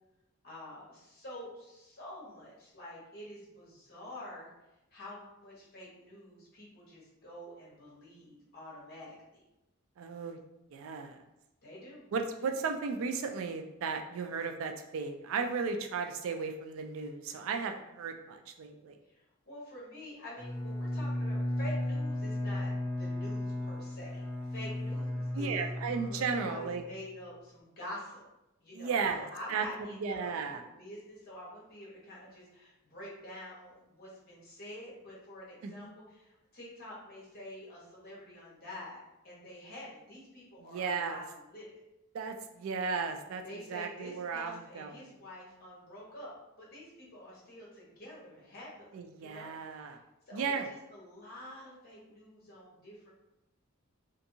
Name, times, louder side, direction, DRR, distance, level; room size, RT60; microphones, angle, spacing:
voice 1, 0.4-4.5 4.9-9.4 11.6-12.0 19.1-24.2 24.5-25.6 26.1-28.3 28.6-30.3 30.6-39.0 39.2-41.8 43.4-50.0 50.3-53.1, left 1 dB, 45° left, -5 dB, 1.0 m, -47 dB
voice 2, 10.0-10.4 10.7-11.2 12.1-19.0 25.3-26.8 28.7-29.6 30.0-30.6 35.6-35.9 40.6-41.2 42.1-43.4 43.7-45.1 48.9-50.0 50.3-50.7, right 5 dB, 75° right, 5 dB, 0.3 m, -35 dB
Bowed string instrument, 20.4-27.0, left 1 dB, 10° left, 0.5 m, -35 dB
2.6 x 2.5 x 2.6 m, 0.91 s
head